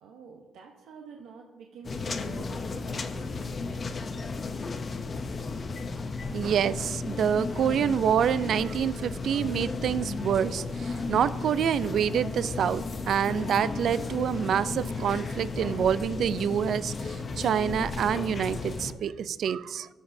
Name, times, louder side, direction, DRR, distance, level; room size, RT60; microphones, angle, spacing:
voice 1, 0.0-4.4, right 5 dB, 85° right, 1 dB, 0.8 m, -48 dB
sound 1, 1.8-18.9, left 4 dB, 40° left, 0.6 m, -34 dB
voice 2, 6.3-19.9, right 8 dB, 65° right, 16 dB, 0.3 m, -27 dB
sound 2, 9.8-15.8, right 3 dB, 50° right, 1.1 m, -51 dB
15.0 x 6.0 x 2.6 m, 1.2 s
cardioid pair, 90°, 0 cm